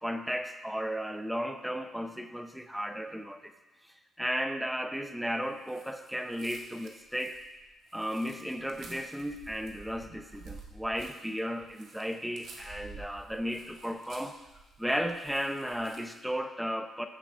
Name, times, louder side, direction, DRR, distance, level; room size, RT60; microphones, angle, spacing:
voice 1, 0.0-3.5 4.2-7.4 7.9-14.4 14.8-17.1, equal, ahead, 7 dB, 0.7 m, -34 dB
sound 1, 5.6-16.3, right 4 dB, 70° right, 1.4 m, -51 dB
13.5 x 6.9 x 2.6 m, 1.1 s
cardioid pair, 90°, 0 cm